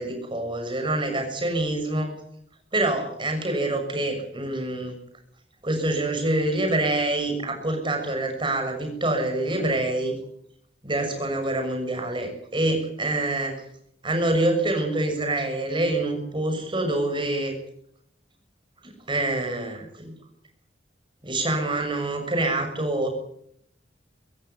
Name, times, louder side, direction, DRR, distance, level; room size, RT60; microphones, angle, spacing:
voice 1, 0.0-2.1 2.7-5.0 5.6-10.1 10.8-13.6 14.0-17.5 18.8-20.1 21.2-23.1, right 2 dB, 30° right, 5 dB, 6.6 m, -26 dB
25.0 x 15.5 x 9.5 m, 0.70 s
head